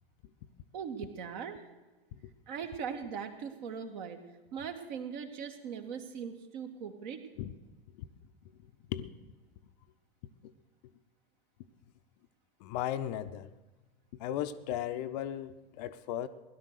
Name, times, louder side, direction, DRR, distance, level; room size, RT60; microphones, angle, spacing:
voice 1, 0.7-1.6 2.5-4.2 4.5-7.2, right 7 dB, 50° right, 6 dB, 1.7 m, -40 dB
voice 2, 12.6-13.5 14.2-16.3, left 11 dB, 45° left, 10 dB, 0.7 m, -36 dB
17.0 x 11.0 x 6.5 m, 1.2 s
figure-of-eight pair, 90°, 30 cm